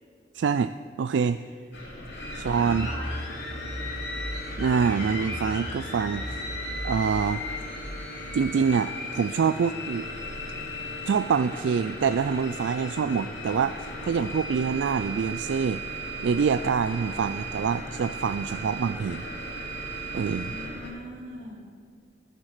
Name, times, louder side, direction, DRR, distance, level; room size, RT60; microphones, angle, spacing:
voice 1, 0.3-0.7 1.0-1.4 2.4-2.9 4.6-6.4 6.8-7.4 8.3-10.0 11.1-15.8 16.2-19.2 20.1-20.5, right 6 dB, 75° right, 11 dB, 0.3 m, -26 dB
sound 1, 1.7-20.9, equal, 70° left, 3.7 m, -35 dB
voice 2, 2.1-3.2 16.9-17.2 20.4-21.6, equal, 50° right, -3 dB, 3.6 m, -42 dB
20.5 x 7.4 x 6.6 m, 2.3 s
head